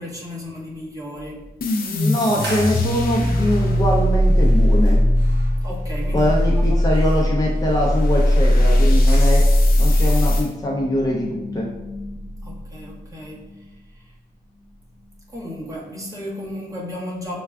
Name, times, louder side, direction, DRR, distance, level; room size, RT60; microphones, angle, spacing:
voice 1, 0.0-1.5 5.6-6.8 12.4-13.5 13.9-14.1 15.3-17.4, left 1 dB, 20° right, -5 dB, 1.2 m, -34 dB
sound 1, 1.2-1.6 2.5-7.0 7.3-7.5 7.8-8.1 8.3-8.6 9.3-9.4 10.4-13.6, left 1 dB, 40° right, 1.0 m, -30 dB
sound 2, 1.6-10.5, left 1 dB, 60° left, 0.6 m, -18 dB
voice 2, 1.8-5.0 6.1-9.5 9.8-11.7, left 1 dB, 20° left, -4 dB, 0.7 m, -23 dB
sound 3, 2.2-9.7, right 2 dB, 85° right, 0.8 m, -40 dB
6.6 x 2.2 x 2.4 m, 1.0 s
cardioid pair, 80°, 17 cm